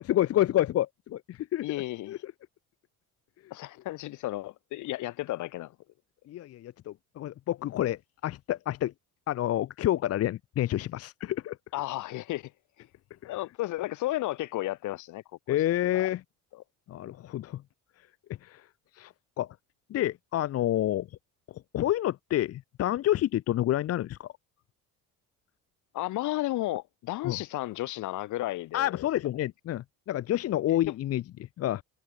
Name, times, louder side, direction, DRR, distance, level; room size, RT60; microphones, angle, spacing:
voice 1, 0.0-1.6 2.1-2.3 6.3-8.9 9.3-11.6 13.2-13.3 15.5-16.2 16.9-17.6 18.4-18.7 18.9-19.5 19.9-21.1 21.7-24.3 27.2-27.4 28.7-31.2 31.6-31.8, left 13 dB, 50° left, 0.8 m, -28 dB
voice 2, 1.6-2.2 3.5-5.7 11.7-12.5 13.2-15.2 15.5-15.6 15.9-16.1 16.5-16.6 25.9-29.0 30.7-30.8, left 16 dB, 70° left, 1.7 m, -33 dB
cardioid pair, 125°, 31 cm